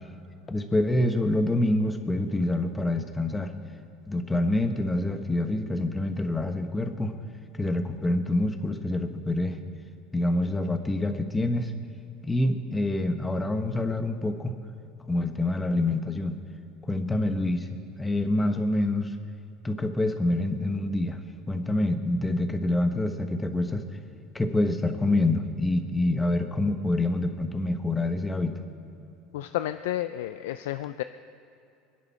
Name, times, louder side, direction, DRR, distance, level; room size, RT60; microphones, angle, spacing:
voice 1, 0.5-3.5 4.1-7.1 7.6-9.6 10.1-11.7 12.2-14.6 15.1-16.4 16.9-17.7 18.0-19.1 19.6-21.2 21.5-23.8 24.3-28.5, left 1 dB, 10° left, 7 dB, 1.3 m, -26 dB
voice 2, 29.3-31.0, left 14 dB, 90° left, 10 dB, 0.4 m, -31 dB
24.5 x 11.0 x 4.3 m, 2.8 s
supercardioid pair, 115°, 0 cm